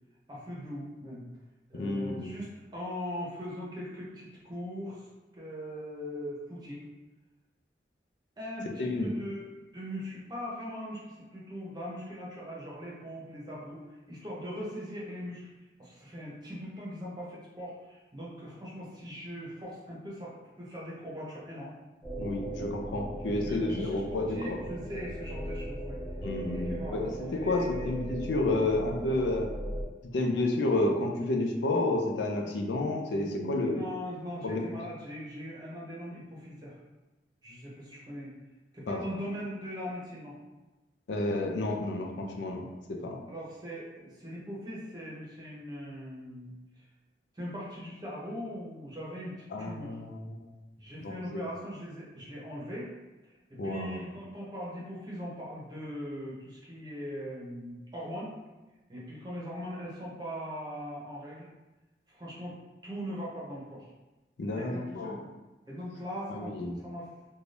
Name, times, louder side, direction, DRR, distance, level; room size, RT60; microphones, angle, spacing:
voice 1, 0.3-1.3 1.7-5.1 5.3-6.8 8.4-9.4 9.7-15.5 15.8-21.7 23.4-26.0 26.5-27.9 32.4-32.6 33.2-36.7 37.4-38.3 38.7-40.3 43.3-46.9 47.3-50.0 50.8-52.9 53.2-58.3 58.9-61.5 62.1-62.5 62.8-63.9 64.5-65.1 65.7-67.1, equal, 25° right, -6 dB, 0.7 m, -40 dB
voice 2, 1.7-2.4 8.8-9.1 22.2-24.6 26.2-29.5 30.1-33.8 34.4-34.8 38.9-39.0 41.1-42.6 42.9-43.2 49.5-50.4 51.0-51.4 53.6-54.0 64.4-65.2 66.3-66.8, left 2 dB, 90° left, 2 dB, 0.4 m, -30 dB
sound 1, 22.0-29.8, right 1 dB, 15° left, 0.5 m, -38 dB
2.6 x 2.3 x 3.3 m, 1.1 s
head